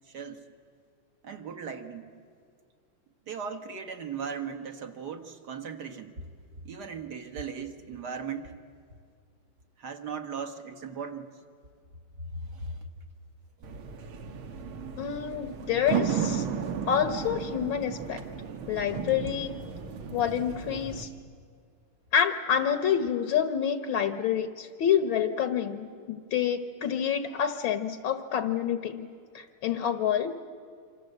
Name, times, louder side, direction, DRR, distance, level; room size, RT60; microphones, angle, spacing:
voice 1, 0.1-0.4 1.2-2.1 3.3-6.1 6.6-8.6 9.8-11.3 12.3-12.8, right 5 dB, 50° right, 6 dB, 2.1 m, -38 dB
sound 1, 13.6-21.0, right 7 dB, 75° right, 2.2 m, -34 dB
voice 2, 15.0-16.5 16.9-18.2 18.7-19.6 20.1-21.1 22.1-29.1 29.3-30.4, left 8 dB, 65° left, 9 dB, 1.8 m, -28 dB
28.0 x 26.0 x 8.0 m, 2.2 s
omnidirectional pair, 2.4 m